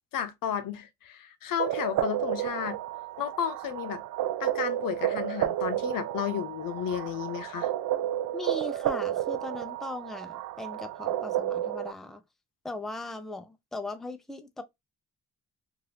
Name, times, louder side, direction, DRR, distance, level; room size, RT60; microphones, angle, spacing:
voice 1, 0.1-2.8 3.2-4.0 4.4-7.7, left 9 dB, 85° left, 0.7 m, -33 dB
sound 1, 1.6-11.9, right 12 dB, 70° right, 0.5 m, -31 dB
voice 2, 8.3-12.2 12.6-14.6, left 2 dB, ahead, 0.4 m, -38 dB
2.7 x 2.5 x 3.2 m
cardioid pair, 95°, 32 cm